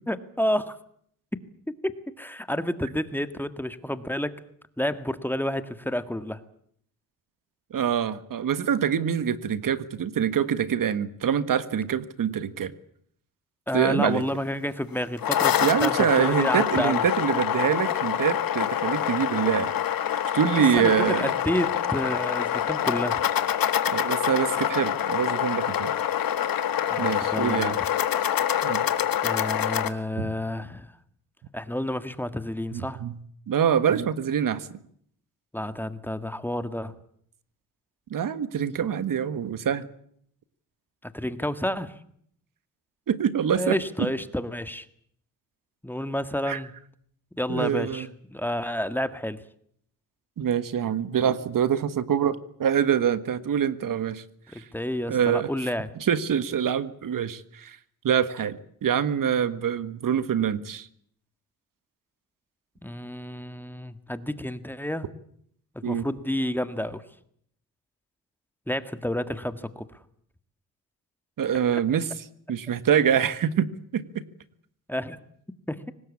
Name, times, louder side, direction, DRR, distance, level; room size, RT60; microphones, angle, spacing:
voice 1, 0.1-0.8 1.7-4.4 4.8-6.4 13.7-17.1 20.5-23.2 26.9-27.9 29.2-30.9 31.5-33.0 35.5-36.9 41.0-42.0 43.6-44.9 45.8-46.7 47.4-49.4 54.5-55.9 62.8-65.1 65.8-67.1 68.7-70.0 74.9-75.2 75.7-75.8, left 1 dB, 5° left, 11 dB, 1.7 m, -30 dB
voice 2, 7.7-12.7 13.7-14.2 15.6-19.7 20.3-21.3 23.9-25.9 27.0-27.8 28.6-28.8 30.2-30.3 32.7-33.1 33.5-34.7 38.1-39.9 43.1-43.8 46.5-46.6 47.5-48.1 50.4-54.2 55.1-55.5 56.0-57.8 58.0-60.9 65.8-66.1 71.4-73.7 73.9-74.0, right 8 dB, 65° right, 14 dB, 1.6 m, -25 dB
sound 1, 15.0-29.9, left 10 dB, 70° left, 1.8 m, -26 dB
24.5 x 19.0 x 8.5 m, 0.66 s
cardioid pair, 95°, 35 cm